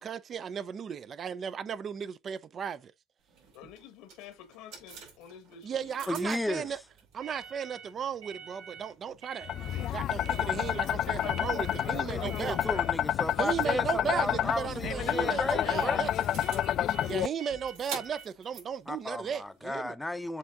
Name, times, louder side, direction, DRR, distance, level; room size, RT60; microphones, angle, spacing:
voice 1, 0.0-2.9 5.6-6.8 7.1-9.5 9.9-12.6 13.4-16.3 17.0-19.9, right 7 dB, 40° right, 0.6 m, -35 dB
sound 1, 3.3-19.7, right 5 dB, 80° right, 3.9 m, -47 dB
voice 2, 3.5-6.2 9.7-10.1 19.2-19.3, left 7 dB, 75° left, 1.2 m, -50 dB
voice 3, 6.1-6.8 12.0-16.1 18.9-20.4, left 1 dB, 5° left, 0.7 m, -34 dB
sound 2, 9.5-17.3, left 11 dB, 55° left, 0.3 m, -29 dB
7.4 x 3.5 x 3.6 m
supercardioid pair, 95°, 0 cm